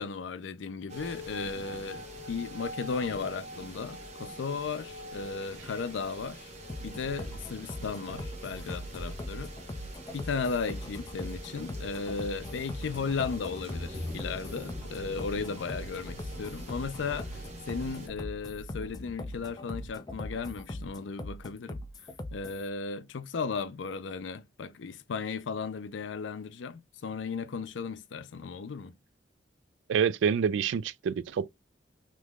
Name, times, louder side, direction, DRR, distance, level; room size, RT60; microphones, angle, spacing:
voice 1, 0.0-6.5 6.8-9.5 10.1-29.0, left 5 dB, 80° left, 0.4 m, -35 dB
sound 1, 0.9-18.1, equal, 40° right, 1.1 m, -44 dB
sound 2, 6.7-22.7, left 1 dB, 20° left, 0.4 m, -41 dB
voice 2, 29.9-31.5, right 7 dB, 85° right, 0.3 m, -27 dB
3.3 x 3.0 x 2.2 m
head